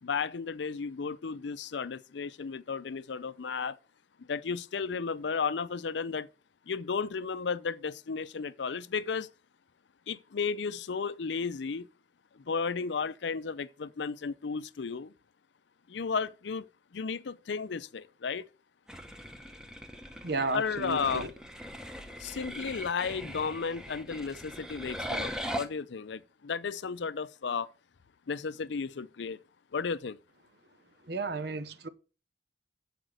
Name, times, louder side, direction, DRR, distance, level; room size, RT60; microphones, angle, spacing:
voice 1, 0.0-3.8 4.3-6.3 6.7-9.3 10.1-11.9 12.5-15.1 15.9-16.7 16.9-18.4 20.5-21.3 22.2-27.7 28.3-29.4 29.7-30.2, left 5 dB, 75° left, 0.5 m, -34 dB
sound 1, 18.9-25.7, equal, 5° right, 0.9 m, -40 dB
voice 2, 20.2-21.3 31.1-31.9, right 3 dB, 60° right, 0.9 m, -33 dB
7.9 x 5.1 x 7.5 m
head